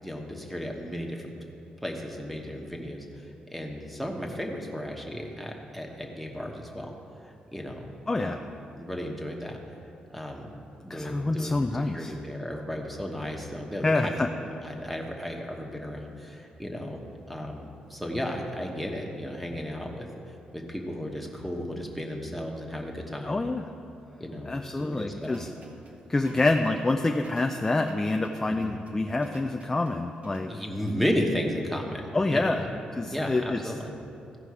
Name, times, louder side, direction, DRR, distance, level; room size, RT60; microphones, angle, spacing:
voice 1, 0.0-1.4 1.8-3.0 3.5-6.9 7.2-7.9 8.2-8.5 8.8-9.6 10.1-10.5 10.8-17.0 17.3-23.4 24.2-24.5 24.8-25.3 26.3-26.4 28.5-28.7 30.5-32.7 33.1-33.9, equal, ahead, 0 dB, 1.1 m, -34 dB
voice 2, 8.1-8.4 10.9-12.1 13.8-14.3 23.2-23.6 24.4-25.5 26.1-30.5 32.1-32.6 32.9-33.7, left 2 dB, 15° left, 4 dB, 0.4 m, -27 dB
sound 1, 25.3-30.9, right 2 dB, 55° right, 1.0 m, -49 dB
15.5 x 5.3 x 4.8 m, 2.7 s
cardioid pair, 120°, 3 cm